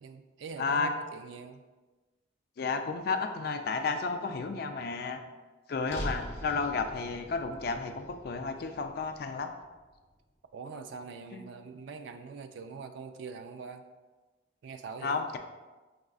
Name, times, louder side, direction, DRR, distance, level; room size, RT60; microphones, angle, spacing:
voice 1, 0.0-1.6 10.5-13.9 14.6-15.2, right 5 dB, 70° right, 8 dB, 0.3 m, -43 dB
voice 2, 0.6-0.9 2.6-5.2 5.7-9.5 11.3-11.4 15.0-15.4, left 4 dB, 50° left, 6 dB, 0.3 m, -32 dB
sound 1, 5.9-10.1, equal, 30° left, 0.8 m, -43 dB
6.0 x 2.4 x 2.4 m, 1.2 s
head